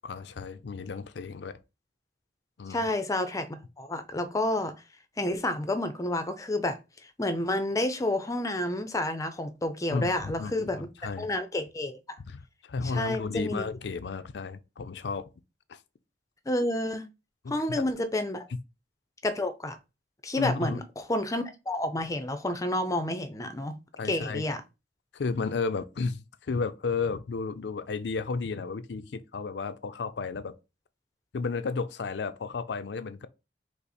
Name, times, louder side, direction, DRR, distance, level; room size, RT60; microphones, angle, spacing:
voice 1, 0.1-1.6 2.6-2.9 9.9-11.3 12.3-15.3 15.7-15.8 17.4-17.9 20.4-20.8 24.0-24.4 25.1-30.5 31.3-33.3, left 4 dB, 70° left, 0.4 m, -33 dB
voice 2, 2.7-4.7 5.2-6.8 7.2-12.0 12.8-13.6 16.5-17.0 17.5-18.5 19.2-19.8 20.2-23.8 24.0-24.6, left 1 dB, 20° left, 0.5 m, -30 dB
5.5 x 2.0 x 4.1 m
head